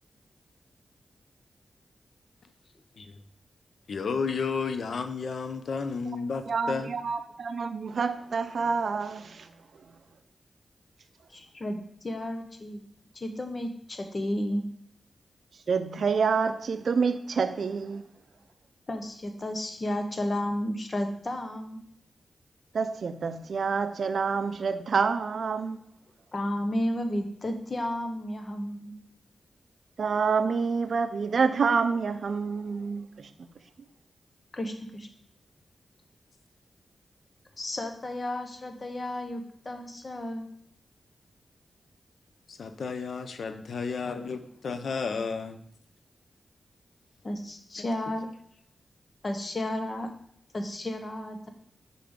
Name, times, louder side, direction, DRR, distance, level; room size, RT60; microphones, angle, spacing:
voice 1, 3.9-6.9 42.5-45.6 47.8-47.9, left 5 dB, 75° left, 0.6 m, -32 dB
voice 2, 6.5-9.5 15.7-18.1 22.7-25.8 30.0-33.3, right 5 dB, 70° right, 0.4 m, -27 dB
voice 3, 11.3-12.8 13.1-14.6 18.9-21.8 26.3-28.9 34.5-35.1 37.6-40.4 47.2-48.3 49.2-50.1 50.5-51.5, left 1 dB, 40° left, 0.9 m, -32 dB
5.7 x 5.1 x 3.7 m
cardioid pair, 80°, 0 cm